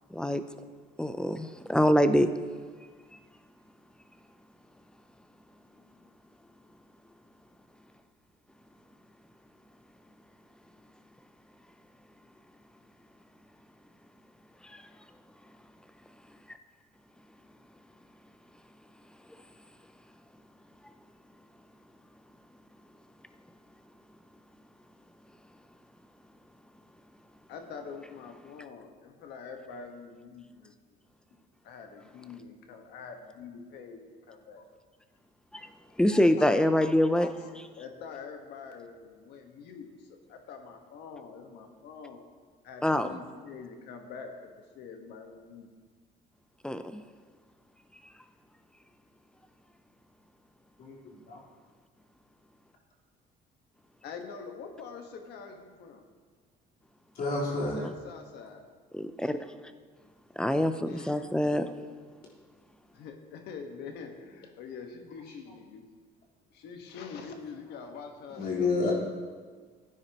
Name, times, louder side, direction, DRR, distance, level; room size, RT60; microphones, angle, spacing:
voice 1, 0.1-0.4 1.0-2.3 14.6-14.8 35.5-35.7 36.0-37.3 42.8-43.2 46.6-47.0 58.9-59.4 60.4-61.7, left 1 dB, 5° left, 10 dB, 0.6 m, -25 dB
voice 2, 5.7-6.1 14.7-14.9 27.5-31.0 31.6-34.7 35.9-36.0 36.4-36.5 36.8-37.5 37.8-42.2 42.6-45.7 54.0-56.0 57.5-58.6 60.8-61.1 62.9-65.9 66.5-68.9, left 5 dB, 80° left, 4 dB, 1.4 m, -45 dB
voice 3, 50.8-51.4 57.2-57.8 68.4-68.9, left 3 dB, 60° left, -5 dB, 3.9 m, -30 dB
15.5 x 9.8 x 2.9 m, 1.5 s
cardioid pair, 110°, 17 cm